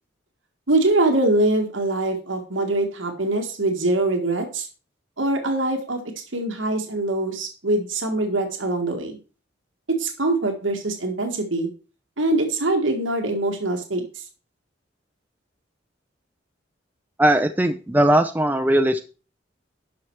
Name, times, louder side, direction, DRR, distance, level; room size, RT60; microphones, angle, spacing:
voice 1, 0.7-4.7 5.2-6.0 6.3-9.2 9.9-11.7 12.2-14.2, right 2 dB, 90° right, 4 dB, 1.8 m, -23 dB
voice 2, 17.2-19.0, right 1 dB, 10° right, 8 dB, 0.5 m, -19 dB
11.0 x 5.7 x 4.6 m, 0.35 s
head